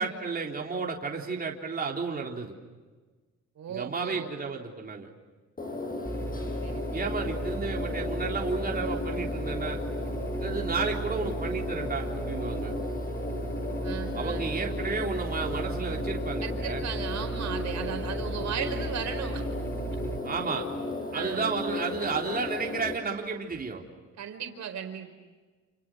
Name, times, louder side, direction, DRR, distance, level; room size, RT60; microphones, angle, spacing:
voice 1, 0.0-2.5 3.7-5.1 6.9-9.8 10.4-12.7 14.1-16.8 20.2-20.7 21.1-23.8, right 4 dB, 30° right, 0 dB, 3.9 m, -32 dB
voice 2, 3.6-4.3 6.6-7.1 13.8-14.4 16.4-19.4 21.1-21.5 24.2-25.1, right 8 dB, 65° right, 6 dB, 4.7 m, -36 dB
sound 1, 5.6-22.9, left 2 dB, 30° left, 6.8 m, -35 dB
sound 2, 6.1-20.2, right 2 dB, 5° left, 5.2 m, -36 dB
29.5 x 29.0 x 6.3 m, 1.3 s
cardioid pair, 90°, 30 cm